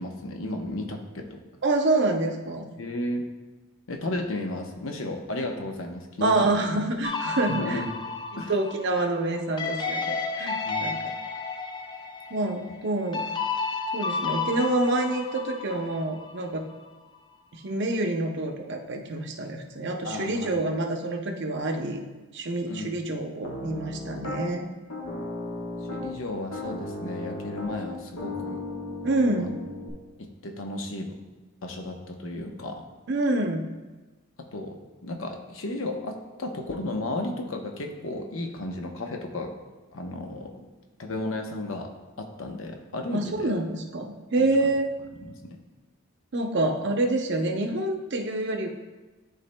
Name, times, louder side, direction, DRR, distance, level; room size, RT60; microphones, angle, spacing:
voice 1, 0.0-1.4 2.8-3.2 3.9-6.5 7.5-7.9 8.4-8.5 10.6-10.9 20.0-20.6 22.7-23.0 25.9-28.6 29.3-29.5 30.2-31.2 31.6-32.9 34.5-39.5 39.9-40.7 41.0-43.5 44.4-44.5 45.2-45.6, left 1 dB, 65° left, 3 dB, 0.8 m, -34 dB
voice 2, 1.6-2.6 6.2-7.8 8.5-11.0 12.3-13.3 13.9-16.6 17.5-22.0 22.3-24.7 29.0-29.6 33.1-33.7 43.1-44.9 46.3-48.7, right 2 dB, 55° right, 3 dB, 0.7 m, -27 dB
sound 1, 7.0-16.4, left 4 dB, 20° left, 0.4 m, -32 dB
Piano, 23.4-24.4 24.9-26.1 26.5-29.9, left 2 dB, 85° left, 1.2 m, -35 dB
11.5 x 4.0 x 2.2 m, 1.2 s
head